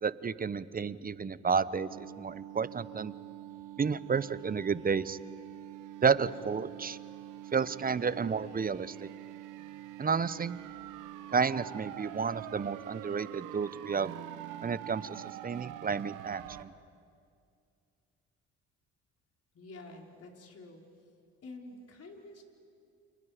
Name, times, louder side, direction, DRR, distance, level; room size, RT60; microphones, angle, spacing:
voice 1, 0.0-3.1 3.8-5.2 6.0-7.0 7.5-9.1 10.0-10.6 11.3-14.1 14.6-16.7, right 6 dB, 30° right, 17 dB, 0.8 m, -31 dB
sound 1, 1.9-16.6, right 13 dB, 75° right, 1.3 m, -45 dB
voice 2, 19.5-20.8 21.4-22.4, left 2 dB, 50° left, 1 dB, 4.5 m, -48 dB
29.5 x 28.5 x 5.1 m, 2.4 s
hypercardioid pair, 60°, 31 cm